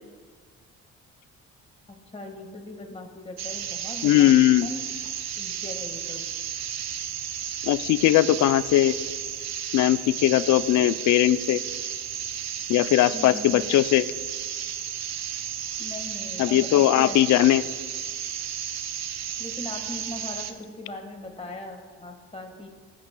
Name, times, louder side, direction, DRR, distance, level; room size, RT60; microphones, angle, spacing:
voice 1, 1.9-4.3 4.6-4.8 5.4-6.2 13.1-13.5 15.8-17.2 19.4-22.7, left 2 dB, 20° left, 3 dB, 1.6 m, -39 dB
sound 1, 3.4-20.5, right 9 dB, 60° right, 0.6 m, -33 dB
voice 2, 4.0-4.7 7.6-8.9 9.7-11.6 12.7-14.0 16.4-17.6, left 14 dB, 70° left, 15 dB, 0.4 m, -19 dB
16.0 x 7.4 x 2.2 m, 1.6 s
cardioid pair, 90°, 30 cm